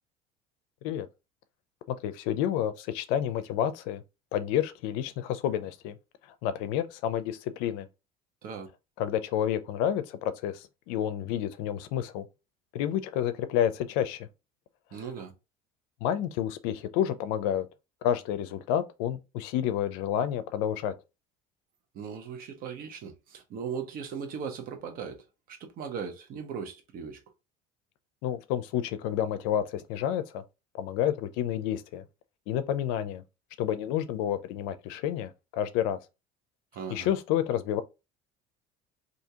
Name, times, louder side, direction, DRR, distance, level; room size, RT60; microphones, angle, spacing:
voice 1, 1.9-4.0 4.3-5.9 6.4-7.9 9.0-12.2 12.7-14.3 16.0-17.7 18.0-20.9 28.2-30.4 30.7-32.0 32.5-33.2 33.6-36.0 36.9-37.8, left 10 dB, 85° left, 0.4 m, -29 dB
voice 2, 14.9-15.3 21.9-27.2 36.7-37.1, right 6 dB, 55° right, 1.0 m, -38 dB
2.8 x 2.7 x 3.5 m
supercardioid pair, 105°, 17 cm